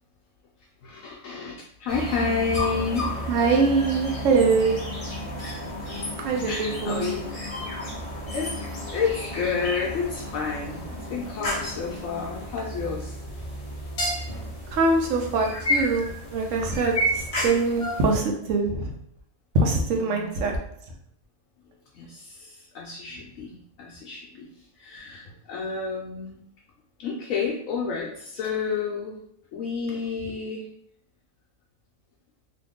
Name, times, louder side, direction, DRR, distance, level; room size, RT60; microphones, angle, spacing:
voice 1, 0.8-3.2 6.4-7.2 7.6-8.0 8.3-8.5 8.9-13.2 19.9-20.3 21.9-26.4 27.0-29.2 29.5-30.7, left 5 dB, 75° left, -3 dB, 1.0 m, -30 dB
sound 1, 1.9-18.2, equal, 40° left, 0.5 m, -32 dB
voice 2, 3.3-4.8 6.2-7.1 14.7-18.9 19.5-20.6, right 3 dB, 70° right, 1 dB, 1.0 m, -23 dB
2.9 x 2.4 x 3.5 m, 0.70 s
omnidirectional pair, 1.4 m